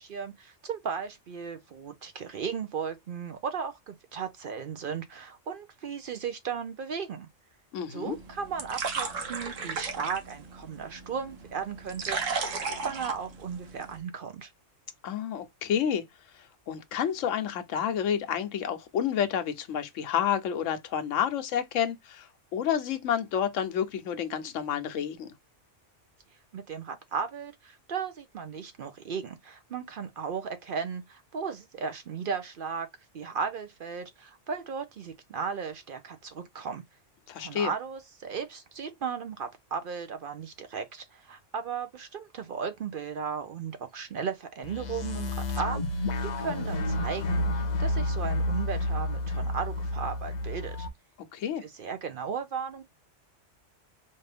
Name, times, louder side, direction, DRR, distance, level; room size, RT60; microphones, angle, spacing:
voice 1, 0.0-7.3 7.9-12.5 12.8-14.5 26.5-32.9 33.1-36.8 37.4-45.8 46.2-50.9 51.6-52.8, right 6 dB, 60° right, 0.6 m, -36 dB
voice 2, 7.7-8.2 15.0-16.0 16.3-25.3 37.3-37.7 51.3-51.6, left 9 dB, 85° left, 1.1 m, -30 dB
sound 1, 8.0-14.0, right 5 dB, 85° right, 1.3 m, -35 dB
sound 2, 44.6-50.9, left 1 dB, 50° left, 0.5 m, -30 dB
4.2 x 2.6 x 3.3 m
omnidirectional pair, 1.3 m